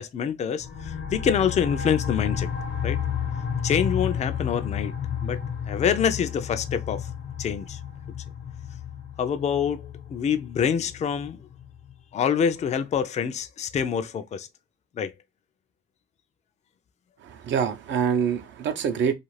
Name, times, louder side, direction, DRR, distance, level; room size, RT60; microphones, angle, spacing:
voice 1, 0.0-2.5 2.8-3.0 3.6-4.9 5.2-7.1 7.4-7.8 9.2-11.4 12.1-14.5 15.0-15.1, left 7 dB, 35° left, 0.4 m, -26 dB
sound 1, 0.6-11.9, left 8 dB, 65° left, 0.7 m, -32 dB
voice 2, 17.2-19.1, right 7 dB, 70° right, 0.6 m, -25 dB
2.4 x 2.4 x 3.1 m
cardioid pair, 90°, 20 cm